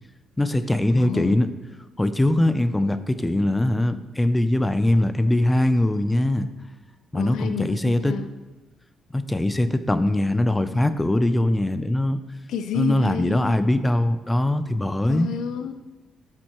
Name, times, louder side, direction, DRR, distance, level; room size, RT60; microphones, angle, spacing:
voice 1, 0.4-1.5 2.0-6.5 7.1-8.2 9.1-12.2 12.7-15.3, left 1 dB, 15° left, 12 dB, 0.5 m, -21 dB
voice 2, 0.9-1.4 7.1-8.3 12.5-13.6 15.1-15.7, left 8 dB, 80° left, 9 dB, 0.5 m, -30 dB
11.0 x 7.5 x 3.0 m, 1.2 s
cardioid pair, 90°, 0 cm